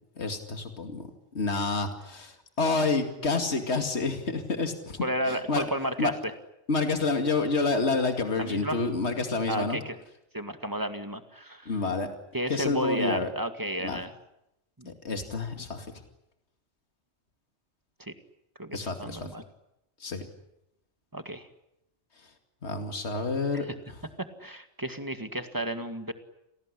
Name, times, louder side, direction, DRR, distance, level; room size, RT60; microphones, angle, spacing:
voice 1, 0.2-1.1 1.3-5.6 6.0-6.1 6.7-9.8 11.7-12.1 12.5-13.3 13.8-14.0 14.9-16.0 18.7-19.2 20.0-20.3 22.6-23.7, left 3 dB, 70° left, 6 dB, 2.6 m, -29 dB
voice 2, 5.0-6.3 8.4-8.8 9.5-10.0 10.3-11.7 12.3-14.1 14.8-14.9 18.0-18.1 18.6-19.4 21.1-21.5 23.5-23.8 24.2-26.1, right 1 dB, 15° right, 8 dB, 2.0 m, -32 dB
29.0 x 18.5 x 9.9 m, 0.84 s
omnidirectional pair, 1.2 m